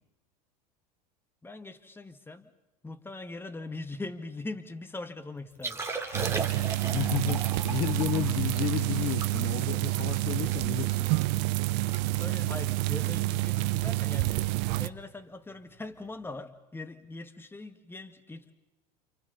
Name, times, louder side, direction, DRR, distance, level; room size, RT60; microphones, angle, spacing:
voice 1, 1.4-2.5 2.8-5.8 12.2-14.4 14.7-18.5, left 2 dB, 10° left, 8 dB, 1.8 m, -41 dB
Liquid, 5.5-10.9 11.3-11.4 11.7-12.0 12.3-12.5 13.1-13.4 14.8-14.9, right 3 dB, 15° right, 3.4 m, -38 dB
sound 1, 6.1-14.9, right 19 dB, 60° right, 0.8 m, -28 dB
voice 2, 6.9-11.1, left 12 dB, 50° left, 12 dB, 1.4 m, -32 dB
29.0 x 29.0 x 4.1 m, 0.97 s
hypercardioid pair, 90°, 21 cm